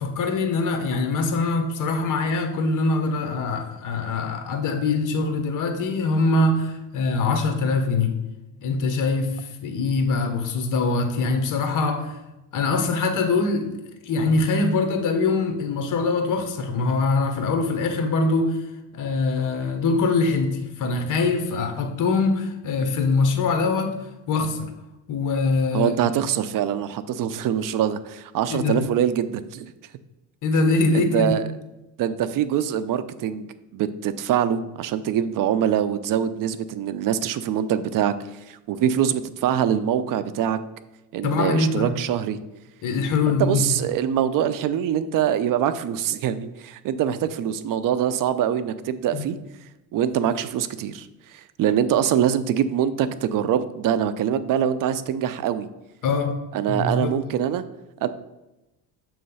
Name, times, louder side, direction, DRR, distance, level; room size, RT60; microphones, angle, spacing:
voice 1, 0.0-8.2 8.6-12.2 12.5-13.7 14.0-18.6 18.9-24.7 25.1-26.1 28.5-28.9 30.4-31.4 41.2-41.9 42.8-43.8 49.1-49.2 56.0-57.2, left 3 dB, 50° left, 1.0 m, -23 dB
voice 2, 25.7-29.7 30.9-31.4 32.0-40.6 41.1-42.4 43.3-49.4 49.9-55.7 56.5-57.6 58.0-58.1, right 9 dB, 55° right, 0.5 m, -24 dB
6.8 x 3.1 x 5.4 m
cardioid pair, 125°, 41 cm